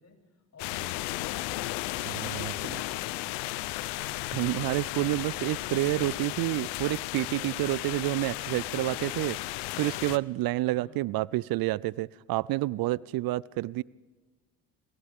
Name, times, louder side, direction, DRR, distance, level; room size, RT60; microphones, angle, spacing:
voice 1, 0.0-2.0 10.7-11.0, left 4 dB, 40° left, 2 dB, 7.8 m, -55 dB
sound 1, 0.6-10.2, left 18 dB, 85° left, 0.8 m, -34 dB
voice 2, 2.1-2.8 4.3-9.4 9.8-13.8, right 18 dB, 65° right, 23 dB, 0.5 m, -29 dB
28.0 x 26.0 x 3.6 m, 1.2 s
supercardioid pair, 75°, 39 cm